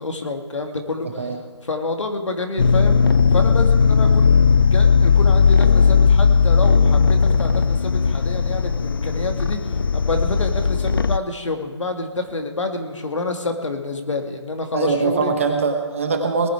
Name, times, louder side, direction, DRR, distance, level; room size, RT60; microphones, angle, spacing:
voice 1, 0.0-1.3 1.6-3.0 3.3-15.3, left 2 dB, 85° left, 4 dB, 2.3 m, -28 dB
voice 2, 1.0-1.4 14.7-16.5, right 4 dB, 25° right, 5 dB, 1.3 m, -22 dB
sound 1, 2.6-11.2, left 5 dB, 45° left, 0.4 m, -16 dB
20.0 x 11.0 x 4.8 m, 1.4 s
hypercardioid pair, 175°, 15 cm